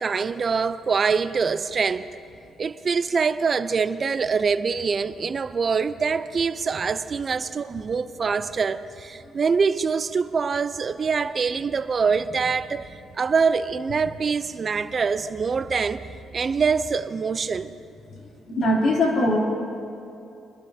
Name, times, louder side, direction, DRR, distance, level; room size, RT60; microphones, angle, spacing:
voice 1, 0.0-2.2 2.6-17.8, right 5 dB, 40° right, 0.5 m, -24 dB
voice 2, 18.5-19.4, left 1 dB, 65° left, 3.0 m, -21 dB
24.0 x 12.0 x 2.8 m
cardioid pair, 90°, 0 cm